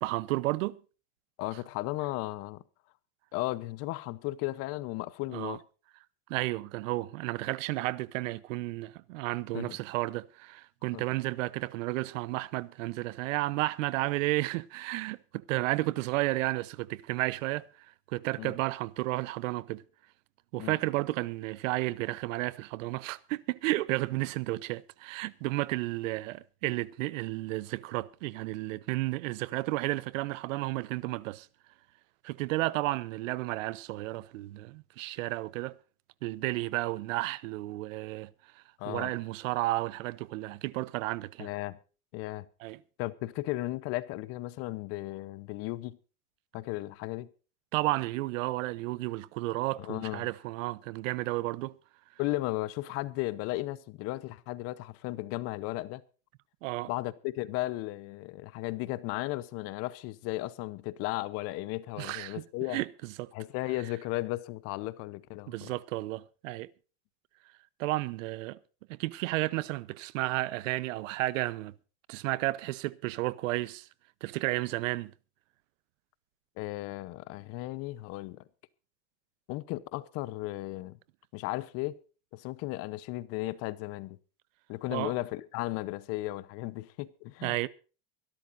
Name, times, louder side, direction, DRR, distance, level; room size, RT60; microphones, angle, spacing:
voice 1, 0.0-0.8 5.3-5.6 6.3-17.7 18.1-19.8 20.5-31.5 32.2-35.8 36.2-38.3 38.5-41.5 42.6-42.8 47.7-51.8 56.6-56.9 62.0-62.4 62.7-63.3 65.5-66.7 67.8-68.6 68.9-71.7 72.1-73.9 74.2-75.1 84.9-85.1 87.4-87.7, right 19 dB, 85° right, 1.0 m, -32 dB
voice 2, 1.4-2.6 3.3-5.6 9.5-9.8 10.9-11.0 18.4-18.6 20.6-20.8 38.8-39.1 41.4-41.8 42.1-42.5 43.0-46.0 46.5-47.3 49.8-50.3 52.2-56.0 56.9-62.8 63.3-65.7 76.6-78.4 79.5-81.0 81.3-82.0 82.3-84.2 84.7-87.6, left 18 dB, 40° left, 0.9 m, -35 dB
24.0 x 12.5 x 2.6 m
cardioid pair, 180°, 38 cm